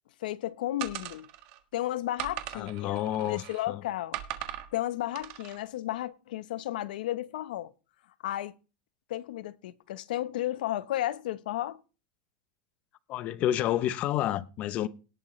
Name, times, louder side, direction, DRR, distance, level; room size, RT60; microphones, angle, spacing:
voice 1, 0.2-1.3 1.7-4.2 4.7-7.7 8.2-8.5 9.1-11.8, left 14 dB, 85° left, 0.9 m, -33 dB
sound 1, 0.8-1.6 2.2-3.7 4.1-4.7 5.2-5.6, right 13 dB, 45° right, 1.5 m, -39 dB
voice 2, 2.5-3.8 13.1-14.9, left 12 dB, 30° left, 0.7 m, -29 dB
18.0 x 8.8 x 3.2 m
supercardioid pair, 170°, 5 cm